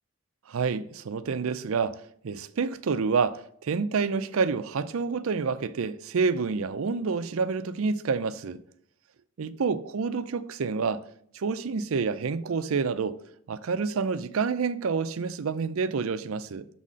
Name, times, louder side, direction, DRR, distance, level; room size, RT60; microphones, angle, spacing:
voice 1, 0.5-8.6 9.4-11.0 11.3-13.2 13.5-16.7, right 5 dB, 75° right, 0.5 m, -28 dB
6.3 x 4.2 x 6.2 m
head